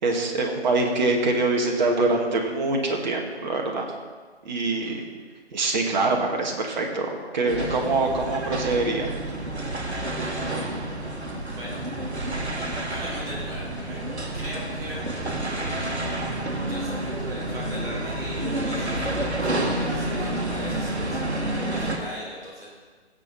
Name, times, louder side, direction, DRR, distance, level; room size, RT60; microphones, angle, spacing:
voice 1, 0.0-3.9 4.4-5.0 5.5-9.1, right 3 dB, 40° right, 1 dB, 2.1 m, -24 dB
sound 1, 7.5-22.0, right 1 dB, 75° right, 2.0 m, -29 dB
voice 2, 11.5-11.8 12.9-15.0 16.7-22.8, equal, 10° right, -5 dB, 2.7 m, -39 dB
16.5 x 7.6 x 4.3 m, 1.5 s
figure-of-eight pair, 140°, 34 cm